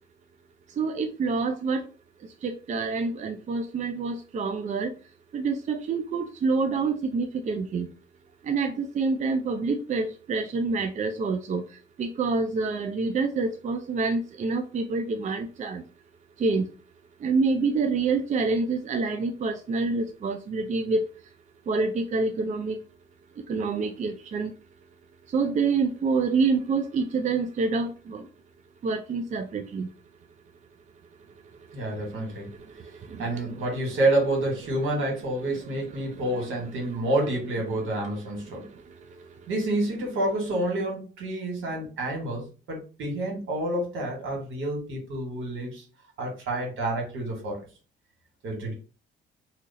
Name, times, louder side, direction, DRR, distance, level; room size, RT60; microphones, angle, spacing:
voice 1, 0.8-1.8 2.4-4.9 5.3-7.9 8.5-11.6 12.0-15.8 16.4-16.6 17.2-21.0 21.7-22.7 23.5-24.5 25.3-28.2 28.8-29.9, right 4 dB, 40° right, 0.4 m, -27 dB
voice 2, 31.7-32.5 33.2-38.6 39.5-45.8 46.2-47.6 48.4-48.7, right 1 dB, 80° right, 1.6 m, -28 dB
2.8 x 2.4 x 3.9 m
cardioid pair, 90°, 20 cm